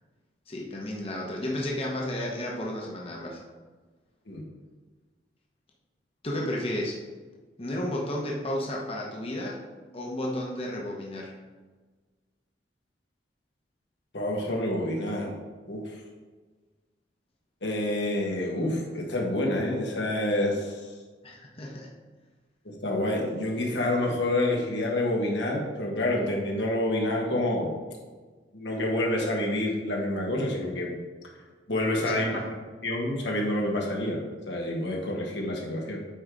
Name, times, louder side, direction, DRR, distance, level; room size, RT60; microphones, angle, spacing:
voice 1, 0.5-3.4 6.2-7.0 7.6-9.6 9.9-11.3 21.2-21.9 32.0-32.5, left 1 dB, 35° left, -2 dB, 1.0 m, -32 dB
voice 2, 14.1-15.3 15.6-16.0 17.6-20.9 22.6-27.7 28.5-31.0 31.7-32.4 32.8-36.0, left 1 dB, 85° left, -1 dB, 1.7 m, -28 dB
9.1 x 4.0 x 4.9 m, 1.4 s
head